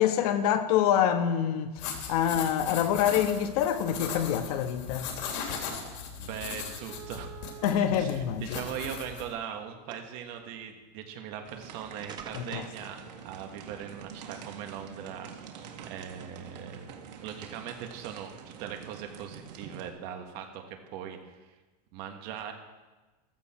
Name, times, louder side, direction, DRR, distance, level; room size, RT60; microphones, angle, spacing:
voice 1, 0.0-1.7 2.1-5.1 7.6-8.4 12.3-12.6, left 9 dB, 65° left, 1.4 m, -26 dB
sound 1, 1.7-9.3, left 6 dB, 90° left, 3.1 m, -38 dB
voice 2, 6.2-7.4 8.0-21.6 21.9-22.5, right 8 dB, 45° right, 1.8 m, -40 dB
sound 2, 6.9-7.8 8.7-9.6 9.9-10.3 11.4-11.5 12.0-12.8, right 9 dB, 20° right, 0.8 m, -46 dB
sound 3, 11.4-19.9, right 7 dB, 90° right, 2.0 m, -46 dB
15.0 x 13.5 x 4.5 m
supercardioid pair, 160°, 21 cm